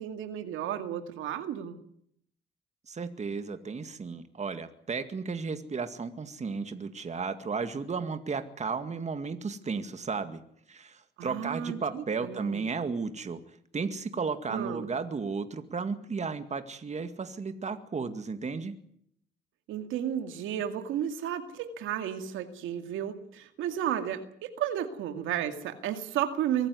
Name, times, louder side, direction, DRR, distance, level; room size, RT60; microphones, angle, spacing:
voice 1, 0.0-1.8 11.2-12.7 14.5-14.9 19.7-26.7, right 10 dB, 90° right, 7 dB, 2.2 m, -33 dB
voice 2, 2.9-10.4 10.7-13.4 13.7-18.8, right 5 dB, 35° right, 9 dB, 2.1 m, -34 dB
23.5 x 14.5 x 9.6 m, 0.68 s
cardioid pair, 90°, 20 cm